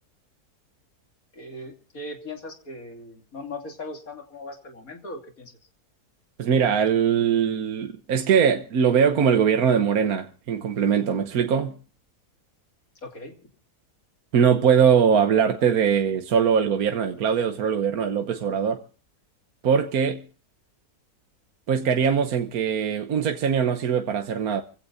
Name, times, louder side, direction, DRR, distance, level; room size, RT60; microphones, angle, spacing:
voice 1, 1.3-5.5 13.0-13.3, left 2 dB, 60° left, 3.3 m, -39 dB
voice 2, 6.4-11.7 14.3-18.8 19.6-20.2 21.7-24.6, right 7 dB, 70° right, 1.4 m, -21 dB
26.5 x 16.5 x 2.6 m
omnidirectional pair, 1.7 m